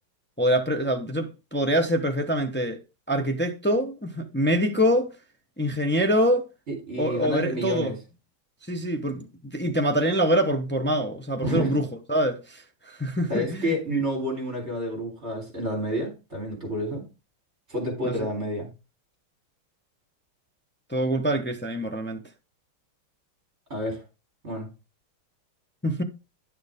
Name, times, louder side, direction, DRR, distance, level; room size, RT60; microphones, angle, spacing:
voice 1, 0.4-2.8 3.1-5.1 5.6-6.4 7.0-7.9 8.7-14.0 18.0-18.2 20.9-22.3 25.8-26.0, equal, 15° left, 0.4 m, -25 dB
voice 2, 6.7-7.9 11.4-11.8 13.3-17.1 17.7-18.7 23.7-24.0 24.4-24.7, equal, 30° right, 4.2 m, -29 dB
10.5 x 6.7 x 3.6 m
omnidirectional pair, 2.3 m